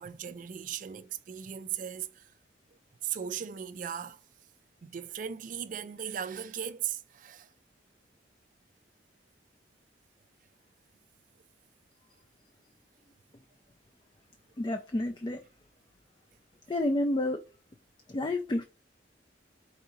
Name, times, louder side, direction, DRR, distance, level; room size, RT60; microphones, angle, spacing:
voice 1, 0.0-2.3 3.0-4.2 4.8-7.5, right 9 dB, 45° right, 0.3 m, -37 dB
voice 2, 14.6-15.4 16.7-17.4 18.1-18.6, left 1 dB, 25° left, 0.4 m, -29 dB
4.7 x 2.7 x 3.8 m
head